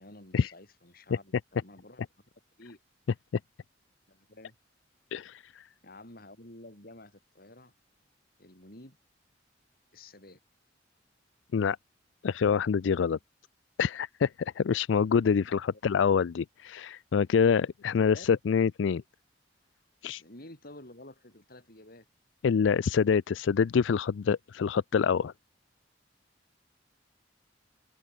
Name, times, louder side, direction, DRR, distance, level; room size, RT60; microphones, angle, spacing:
voice 1, 0.0-2.0 2.6-2.8 4.1-4.6 5.8-7.7 8.4-9.0 9.9-10.4 15.4-15.6 18.1-18.3 20.1-22.1, left 1 dB, 55° left, 7.7 m, -50 dB
voice 2, 5.1-5.7 11.5-11.8 12.2-13.2 13.8-19.0 20.0-20.2 22.4-25.3, left 6 dB, 80° left, 0.4 m, -26 dB
open air
head